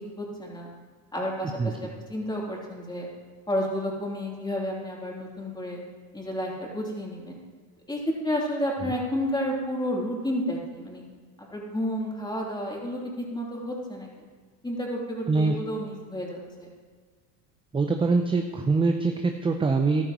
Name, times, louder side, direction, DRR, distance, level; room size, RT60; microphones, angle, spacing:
voice 1, 0.2-0.7 1.1-3.1 3.5-5.8 6.1-7.4 7.9-11.0 11.4-14.1 14.6-16.7, equal, 10° left, -3 dB, 3.1 m, -31 dB
voice 2, 17.7-20.1, right 3 dB, 10° right, 5 dB, 0.6 m, -23 dB
13.5 x 12.0 x 3.1 m, 1.5 s
hypercardioid pair, 90°, 46 cm